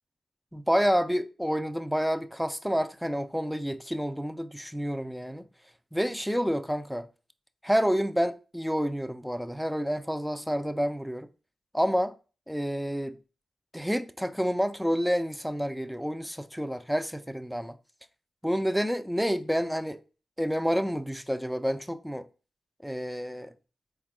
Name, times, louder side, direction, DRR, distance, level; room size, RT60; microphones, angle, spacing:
voice 1, 0.5-5.5 5.9-7.1 7.6-11.3 11.7-12.1 12.5-13.2 13.7-17.7 18.4-20.0 20.4-22.3 22.8-23.5, equal, ahead, 0.5 m, -29 dB
4.0 x 2.3 x 3.6 m
supercardioid pair, 40°, 0 cm